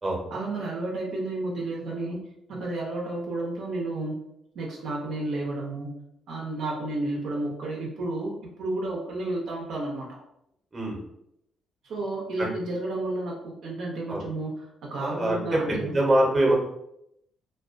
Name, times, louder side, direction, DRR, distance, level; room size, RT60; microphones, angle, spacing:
voice 1, 0.3-2.2 2.5-4.2 4.5-5.9 6.3-8.3 8.6-10.1 11.8-14.5 14.8-16.0, right 2 dB, 75° right, -3 dB, 0.5 m, -31 dB
voice 2, 15.0-16.5, right 1 dB, 30° right, -2 dB, 0.8 m, -24 dB
2.3 x 2.2 x 2.4 m, 0.79 s
cardioid pair, 90°, 0 cm